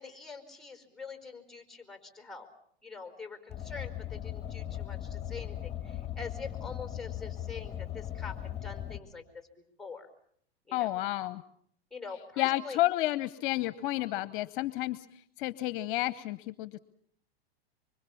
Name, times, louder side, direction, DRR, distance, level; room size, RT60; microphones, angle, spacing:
voice 1, 0.0-2.5 2.8-9.5 9.8-10.1 10.7-10.9 11.9-12.8, left 4 dB, ahead, 6 dB, 4.4 m, -44 dB
Car, 3.5-9.0, left 11 dB, 20° left, 2.4 m, -38 dB
voice 2, 10.7-11.4 12.4-15.1 15.4-16.8, left 16 dB, 55° left, 16 dB, 1.0 m, -31 dB
25.0 x 25.0 x 7.1 m, 0.66 s
hypercardioid pair, 120°, 32 cm